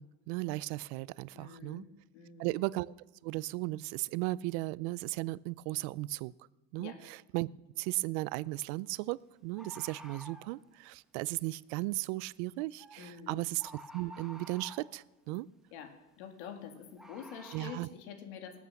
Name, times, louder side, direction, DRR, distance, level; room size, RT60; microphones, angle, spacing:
voice 1, 0.0-1.8 2.4-2.9 3.2-6.3 6.7-7.5 7.8-15.5 17.5-17.9, right 20 dB, 80° right, 22 dB, 0.5 m, -36 dB
voice 2, 1.3-1.9 2.1-2.6 6.8-7.0 13.0-13.5 15.7-18.6, left 7 dB, 90° left, 6 dB, 2.4 m, -47 dB
Bird, 7.8-8.0 9.6-10.5 12.8-13.0 13.6-14.9 17.0-17.8, right 1 dB, ahead, 1.2 m, -50 dB
19.0 x 8.4 x 7.1 m, 1.1 s
cardioid pair, 150°, 33 cm